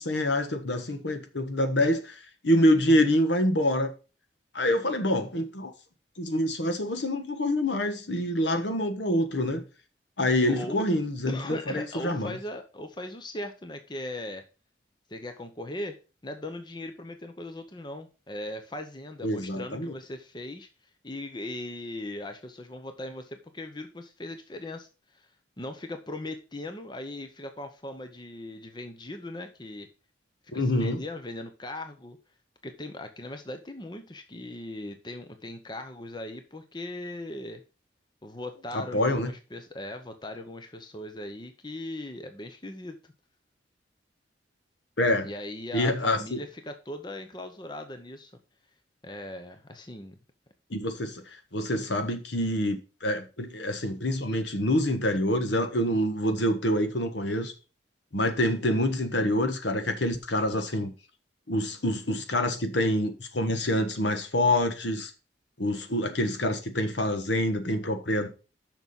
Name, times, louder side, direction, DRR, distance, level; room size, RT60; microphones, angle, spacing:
voice 1, 0.0-3.9 4.5-5.7 6.2-9.6 10.2-12.4 19.2-19.9 30.5-31.0 38.7-39.3 45.0-45.3 45.7-46.4 50.7-57.5 58.1-60.9 61.5-65.1 65.6-68.3, left 1 dB, 75° left, 1.3 m, -26 dB
voice 2, 10.5-10.8 11.3-14.4 15.1-16.0 16.2-20.7 21.0-25.3 25.6-29.9 30.5-32.2 32.6-37.6 38.2-43.1 45.2-48.3 49.0-50.2, left 1 dB, 25° left, 0.8 m, -39 dB
6.7 x 6.1 x 5.4 m
head